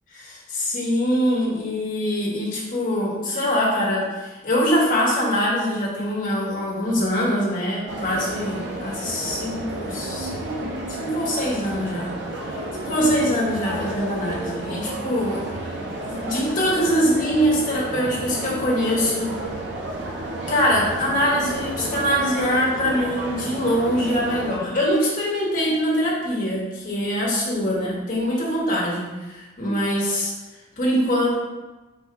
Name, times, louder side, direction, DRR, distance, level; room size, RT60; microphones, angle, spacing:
voice 1, 0.1-12.1 12.4-15.4 16.0-19.4 20.5-30.3 30.8-31.4, equal, 45° left, -5 dB, 1.2 m, -23 dB
sound 1, 7.9-24.6, right 1 dB, 75° right, 0.6 m, -31 dB
4.0 x 2.7 x 4.6 m, 1.1 s
head